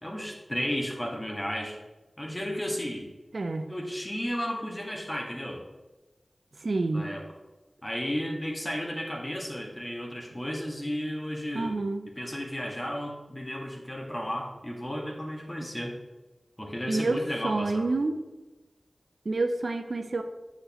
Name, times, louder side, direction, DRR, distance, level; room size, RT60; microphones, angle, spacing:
voice 1, 0.0-1.8 2.2-3.1 3.7-5.6 6.9-7.3 7.8-11.8 12.1-16.0 16.6-17.9, equal, 25° left, 0 dB, 1.7 m, -33 dB
voice 2, 3.3-3.7 6.6-7.1 11.5-12.1 16.9-17.2 17.4-18.2 19.3-20.2, right 3 dB, 70° right, 8 dB, 0.5 m, -28 dB
7.7 x 6.5 x 3.0 m, 1.1 s
wide cardioid pair, 45°, 0 cm